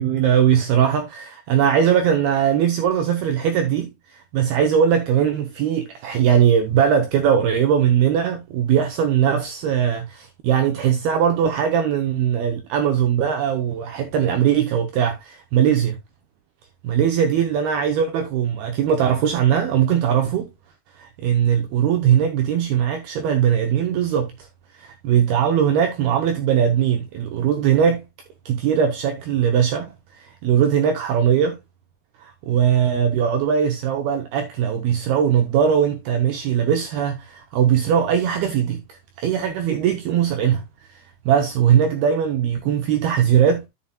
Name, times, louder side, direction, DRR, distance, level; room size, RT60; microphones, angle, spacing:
voice 1, 0.0-16.0 16.8-20.5 21.0-24.5 24.8-28.0 28.5-31.6 32.2-40.6 40.9-43.7, right 8 dB, 85° right, 2.2 m, -20 dB
11.5 x 7.1 x 2.2 m
omnidirectional pair, 5.4 m